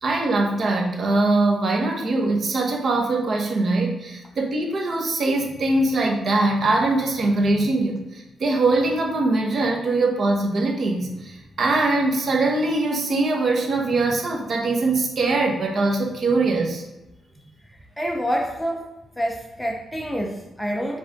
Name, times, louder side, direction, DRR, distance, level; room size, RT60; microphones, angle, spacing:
voice 1, 0.0-16.9, right 2 dB, 45° right, 0 dB, 1.2 m, -22 dB
voice 2, 17.7-18.9 19.2-21.0, equal, 5° left, 2 dB, 0.5 m, -27 dB
7.4 x 3.4 x 3.7 m, 1.0 s
wide cardioid pair, 155°, 0 cm